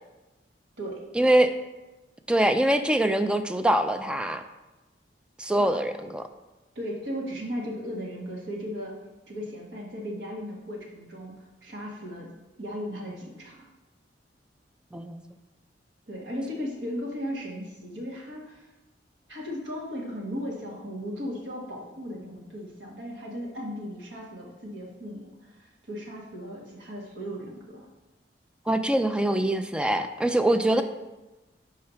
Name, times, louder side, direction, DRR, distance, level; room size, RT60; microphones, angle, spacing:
voice 1, 1.2-1.5 2.3-4.4 5.4-6.3 14.9-15.2 28.7-30.8, right 1 dB, 5° right, 8 dB, 0.3 m, -23 dB
voice 2, 6.7-8.9 9.3-11.3 11.6-12.3 12.6-13.7 16.1-18.6 19.3-25.3 25.6-27.9 29.3-29.5 30.7-30.8, equal, 90° right, -2 dB, 1.5 m, -36 dB
4.8 x 4.3 x 5.6 m, 1.1 s
head